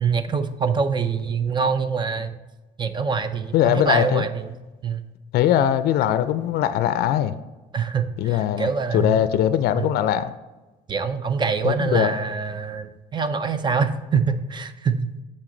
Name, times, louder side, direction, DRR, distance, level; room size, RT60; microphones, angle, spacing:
voice 1, 0.0-2.4 2.8-4.5 4.8-5.0 7.7-9.2 9.8-9.9 10.9-15.1, right 5 dB, 25° right, 10 dB, 0.6 m, -24 dB
voice 2, 3.5-4.3 5.3-7.3 8.2-10.3 11.6-12.1, left 11 dB, 70° left, 12 dB, 0.4 m, -21 dB
7.5 x 4.3 x 3.8 m, 1.1 s
cardioid pair, 110°, 17 cm